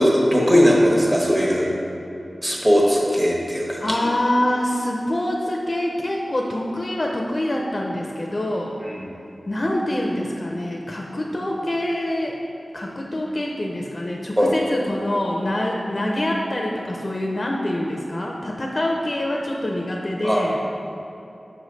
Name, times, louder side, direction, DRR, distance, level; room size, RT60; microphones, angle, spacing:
voice 1, 0.0-1.7 2.4-4.0 8.8-9.0 14.4-14.5 20.2-20.6, equal, 20° right, -3 dB, 1.1 m, -19 dB
voice 2, 3.8-8.8 9.5-12.3 12.7-20.6, left 1 dB, 45° left, 0 dB, 0.4 m, -25 dB
6.0 x 3.1 x 5.1 m, 2.9 s
wide cardioid pair, 80°, 0 cm